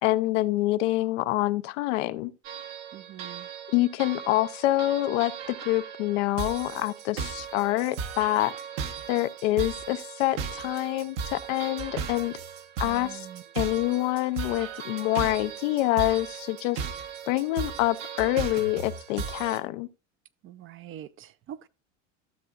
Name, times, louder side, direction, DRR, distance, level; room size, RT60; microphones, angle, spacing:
voice 1, 0.0-2.3 3.7-8.5 9.1-12.3 12.8-13.3 13.6-16.8 17.3-19.9, left 17 dB, 85° left, 0.6 m, -26 dB
sound 1, 2.4-19.6, right 6 dB, 70° right, 1.2 m, -37 dB
voice 2, 2.9-3.5 12.8-13.4 20.4-21.7, right 11 dB, 35° right, 0.4 m, -44 dB
12.5 x 6.8 x 2.4 m
supercardioid pair, 95°, 36 cm